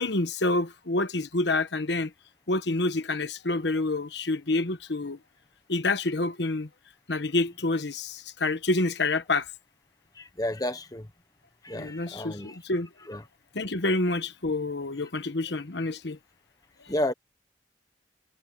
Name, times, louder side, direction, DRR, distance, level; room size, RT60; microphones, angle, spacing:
voice 1, 0.0-2.1 2.5-5.2 5.7-6.7 7.1-9.4 11.7-12.9 13.5-16.2, left 2 dB, 65° left, 1.2 m, -28 dB
voice 2, 10.1-11.1 11.6-12.6 13.1-13.2 16.9-17.1, left 1 dB, 20° left, 1.1 m, -31 dB
head